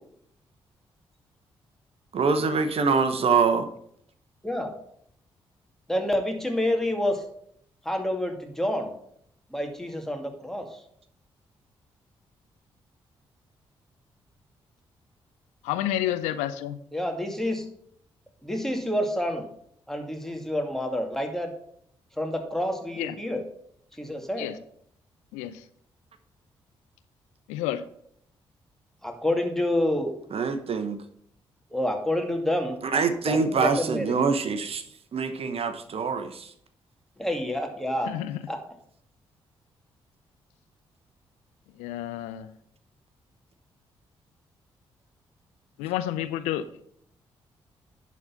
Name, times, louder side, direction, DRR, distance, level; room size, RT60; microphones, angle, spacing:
voice 1, 2.1-3.7 30.3-31.0 32.8-34.8 35.1-36.5, right 5 dB, 55° right, 10 dB, 1.0 m, -24 dB
voice 2, 5.9-7.2 7.9-8.9 9.5-10.7 16.9-17.6 18.4-19.5 19.9-21.5 22.2-23.4 24.0-24.5 29.0-30.1 31.7-32.8 33.3-34.2 37.2-38.1 38.5-38.6, left 1 dB, 5° left, 3 dB, 2.2 m, -28 dB
voice 3, 15.6-16.8 23.0-23.1 24.4-24.6 25.3-25.6 27.5-27.8 38.1-38.4 41.8-42.5 45.8-46.8, left 12 dB, 85° left, 13 dB, 0.4 m, -30 dB
10.5 x 4.2 x 5.7 m, 0.68 s
hypercardioid pair, 40°, 12 cm